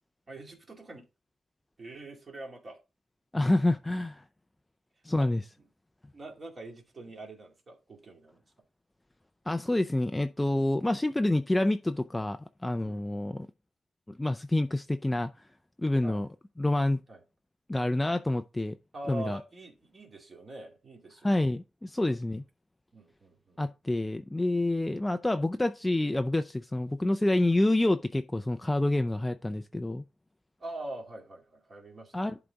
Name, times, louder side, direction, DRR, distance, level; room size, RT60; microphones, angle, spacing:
voice 1, 0.3-1.1 1.8-2.8 5.1-5.7 6.1-8.4 12.8-13.1 16.0-16.2 17.1-17.2 18.9-21.5 22.0-22.2 22.9-23.6 30.6-32.4, right 2 dB, 30° right, 2.4 m, -44 dB
voice 2, 3.3-4.2 5.0-5.4 9.5-13.5 14.2-15.3 15.8-16.3 16.6-17.0 17.7-18.8 19.1-19.4 21.2-22.4 23.6-30.0 32.1-32.4, left 1 dB, 10° left, 0.4 m, -27 dB
11.0 x 4.0 x 4.6 m
wide cardioid pair, 165°, 0 cm